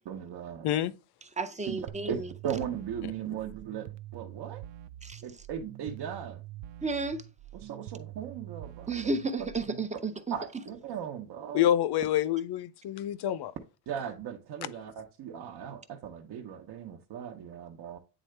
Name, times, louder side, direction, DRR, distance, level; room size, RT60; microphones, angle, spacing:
voice 1, 0.0-0.7 1.7-1.8 2.1-4.6 5.2-6.4 7.5-9.1 10.3-11.7 13.9-18.0, right 8 dB, 60° right, 1.0 m, -38 dB
voice 2, 1.4-2.3 5.0-5.2 6.8-7.2 8.9-10.4, right 3 dB, 15° right, 0.5 m, -32 dB
sound 1, 1.9-9.9, right 14 dB, 75° right, 0.6 m, -45 dB
voice 3, 11.5-13.5, left 11 dB, 60° left, 0.6 m, -27 dB
9.1 x 3.8 x 3.3 m
cardioid pair, 155°, 45 cm